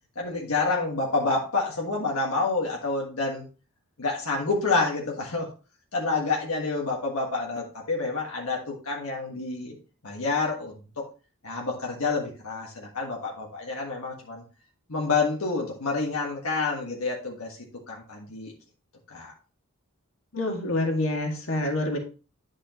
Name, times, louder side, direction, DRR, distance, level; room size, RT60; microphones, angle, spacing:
voice 1, 0.1-3.5 4.0-5.5 5.9-9.8 10.0-11.0 11.4-14.4 14.9-17.6 17.9-18.5 19.1-19.3, left 3 dB, 90° left, -2 dB, 1.6 m, -28 dB
voice 2, 20.3-22.0, left 1 dB, 70° left, 1 dB, 2.0 m, -27 dB
10.5 x 4.9 x 3.0 m, 0.34 s
head